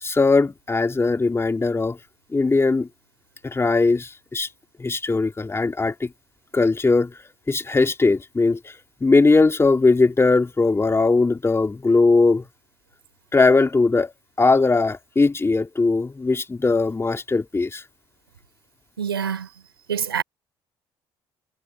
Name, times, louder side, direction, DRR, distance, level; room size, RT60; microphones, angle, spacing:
voice 1, 0.0-2.0 2.3-2.9 3.4-4.5 4.8-6.1 6.5-7.2 7.5-8.7 9.0-12.4 13.3-14.1 14.4-17.8, left 3 dB, 20° left, 2.7 m, -19 dB
voice 2, 19.0-19.5 19.9-20.2, right 8 dB, 85° right, 4.3 m, -25 dB
figure-of-eight pair, 50°, 12 cm